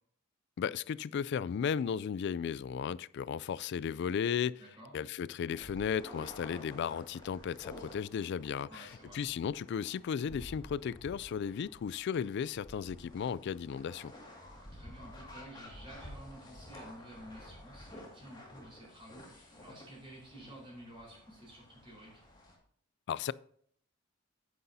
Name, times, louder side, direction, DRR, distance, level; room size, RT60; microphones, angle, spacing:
voice 1, 0.6-4.6 4.9-8.9 9.1-14.1 23.1-23.3, left 7 dB, 55° left, 0.3 m, -35 dB
voice 2, 4.6-4.9 8.7-9.2 14.5-22.2, right 1 dB, 25° right, 4.4 m, -52 dB
sound 1, 5.5-22.5, left 1 dB, 20° left, 2.2 m, -52 dB
9.7 x 9.4 x 2.7 m
head